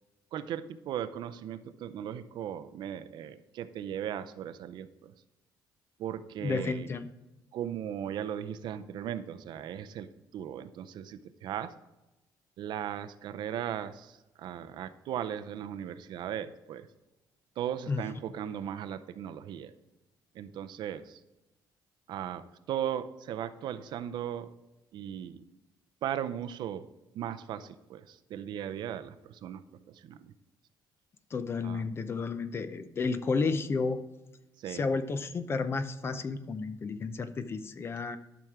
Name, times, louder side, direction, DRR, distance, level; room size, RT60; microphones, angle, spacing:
voice 1, 0.3-5.1 6.0-6.9 7.5-10.1 10.3-11.7 12.6-14.1 14.4-16.9 17.6-19.7 20.4-21.2 22.1-24.5 24.9-25.4 26.0-26.8 27.1-29.6 30.1-30.3 31.6-31.8 34.6-34.8, right 10 dB, 65° right, 11 dB, 0.6 m, -37 dB
voice 2, 6.4-7.1 17.9-18.0 31.3-34.0 34.7-38.2, left 4 dB, 30° left, 11 dB, 0.6 m, -32 dB
12.0 x 6.1 x 3.6 m, 1.0 s
cardioid pair, 145°, 8 cm